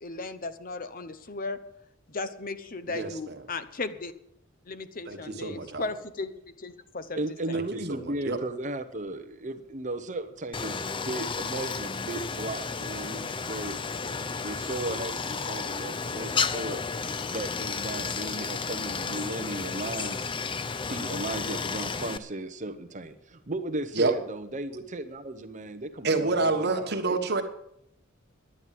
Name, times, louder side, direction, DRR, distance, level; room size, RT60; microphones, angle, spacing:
voice 1, 0.0-1.6 2.1-4.1 4.7-6.3 6.6-7.2 7.5-7.7, left 3 dB, 40° left, 11 dB, 0.8 m, -36 dB
voice 2, 5.1-5.8 7.5-8.4 24.0-24.1 26.0-27.4, right 3 dB, 50° right, 6 dB, 1.4 m, -28 dB
voice 3, 7.2-16.8 17.3-20.3 20.9-27.2, right 2 dB, 35° right, 8 dB, 0.9 m, -35 dB
Stream, 10.5-22.2, left 5 dB, 25° left, 0.5 m, -32 dB
11.0 x 9.9 x 7.6 m, 0.77 s
head